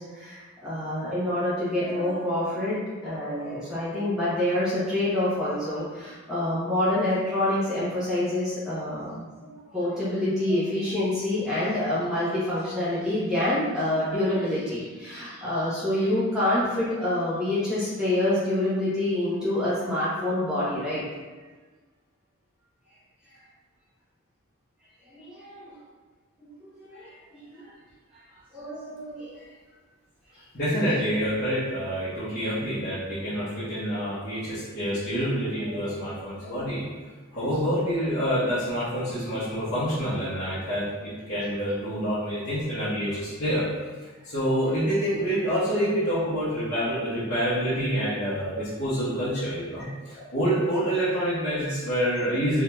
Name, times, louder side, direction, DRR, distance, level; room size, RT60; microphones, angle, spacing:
voice 1, 0.0-21.0 25.1-25.7 26.6-27.1 27.5-27.7 28.5-29.3 35.7-35.8, left 1 dB, 5° right, -13 dB, 0.9 m, -27 dB
voice 2, 30.5-36.8 37.3-43.6 44.2-52.6, equal, 50° left, -14 dB, 1.0 m, -27 dB
3.6 x 2.8 x 2.3 m, 1.4 s
head